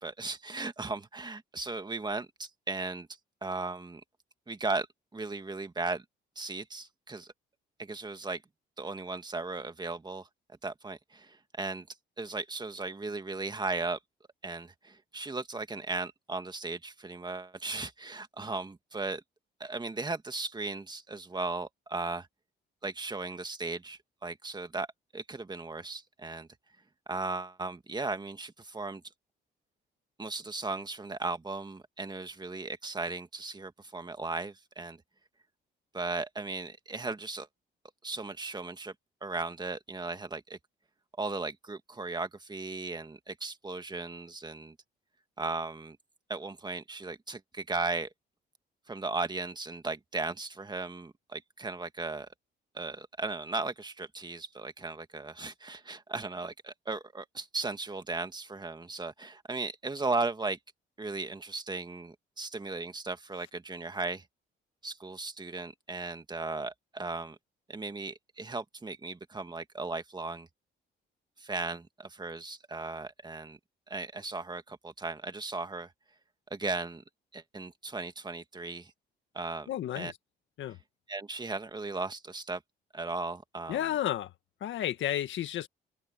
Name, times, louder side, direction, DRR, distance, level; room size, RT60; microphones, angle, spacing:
voice 1, 0.0-3.1 3.4-4.0 4.5-4.9 5.1-6.0 6.4-7.3 7.8-8.4 8.8-10.3 10.6-11.9 12.2-14.0 14.4-19.2 19.6-22.3 22.8-24.9 25.1-26.5 27.1-29.0 30.2-35.0 35.9-37.5 38.0-38.9 39.2-40.6 41.2-44.8 45.4-46.0 46.3-48.1 48.9-52.3 52.7-60.6 61.0-64.2 64.8-67.4 67.7-70.5 71.4-73.6 73.9-75.9 76.5-77.0 77.3-78.9 79.3-79.7 79.9-80.1 80.7-80.8 81.1-82.6 82.9-83.9, right 3 dB, 20° right, 2.0 m, -36 dB
voice 2, 79.7-80.1 80.6-80.8 83.7-84.3 84.6-85.7, left 11 dB, 75° left, 1.7 m, -32 dB
open air
cardioid pair, 90°, 20 cm